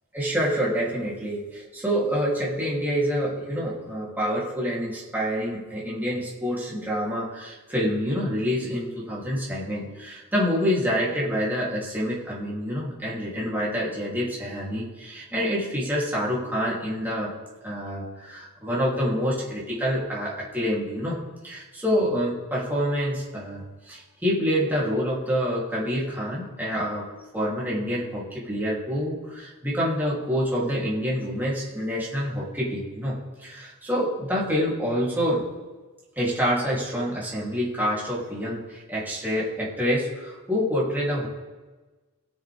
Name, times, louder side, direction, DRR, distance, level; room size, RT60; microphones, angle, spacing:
voice 1, 0.1-17.3 17.6-27.1 27.3-35.4 36.2-41.3, equal, 10° right, -7 dB, 3.1 m, -27 dB
17.5 x 7.9 x 3.5 m, 1.3 s
head